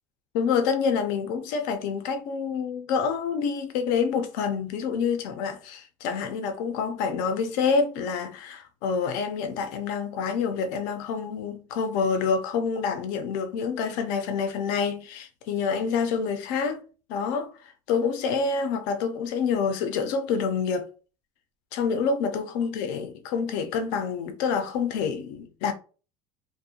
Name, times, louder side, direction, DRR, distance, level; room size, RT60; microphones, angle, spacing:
voice 1, 0.3-16.8 17.1-20.9 21.7-25.7, left 5 dB, 75° left, 0.5 m, -27 dB
2.5 x 2.1 x 2.7 m
cardioid pair, 165°, 11 cm